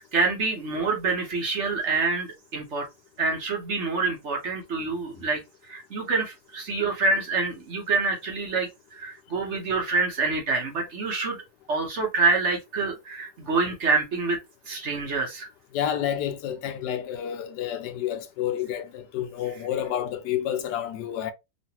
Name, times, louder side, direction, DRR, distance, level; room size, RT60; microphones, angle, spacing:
voice 1, 0.0-2.9 3.2-5.4 5.7-11.4 11.7-14.4 14.7-15.5, right 3 dB, 55° right, 1.0 m, -26 dB
voice 2, 15.7-21.3, left 10 dB, 90° left, 1.2 m, -29 dB
3.1 x 2.5 x 2.8 m
omnidirectional pair, 1.7 m